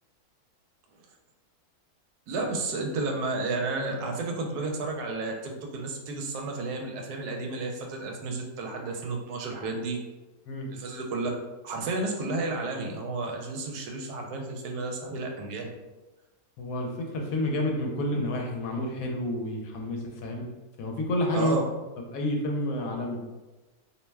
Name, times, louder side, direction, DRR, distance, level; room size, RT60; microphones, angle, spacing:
voice 1, 2.3-10.0 10.7-11.3 11.6-15.7 21.3-21.7, right 3 dB, 85° right, 2 dB, 1.1 m, -32 dB
voice 2, 16.6-20.5 20.8-21.6 22.1-23.2, left 1 dB, 70° left, 1 dB, 1.0 m, -29 dB
2.7 x 2.2 x 3.1 m, 1.1 s
omnidirectional pair, 1.6 m